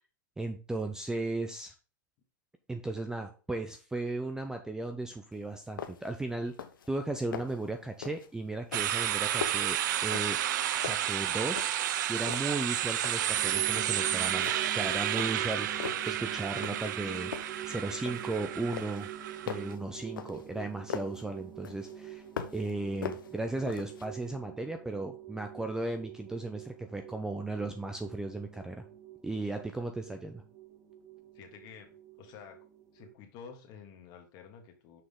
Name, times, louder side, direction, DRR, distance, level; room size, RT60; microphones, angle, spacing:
voice 1, 0.4-1.7 2.7-6.5 6.9-10.4 10.8-11.7 12.1-15.7 16.1-17.3 17.6-19.1 19.5-22.2 22.5-28.8 29.2-30.4, right 2 dB, 5° right, 5 dB, 0.5 m, -36 dB
sound 1, 5.3-5.4 5.8-6.2 6.5-6.9 7.2-7.7 8.0-8.3 8.7-10.5 10.8-11.9 12.2-13.3 13.7-14.0 14.4-14.8 15.2-16.1 16.6-17.0 17.3-18.4 18.7-21.2 21.6-22.7 23.0-24.1, left 8 dB, 80° left, 0.8 m, -41 dB
sound 2, 8.7-19.7, right 11 dB, 60° right, 0.5 m, -31 dB
sound 3, 13.4-33.1, right 10 dB, 30° right, 0.9 m, -45 dB
voice 2, 31.3-31.9 32.2-32.6 32.9-35.0, left 7 dB, 40° left, 4 dB, 1.7 m, -50 dB
6.2 x 4.8 x 3.6 m, 0.36 s
hypercardioid pair, 120°, 11 cm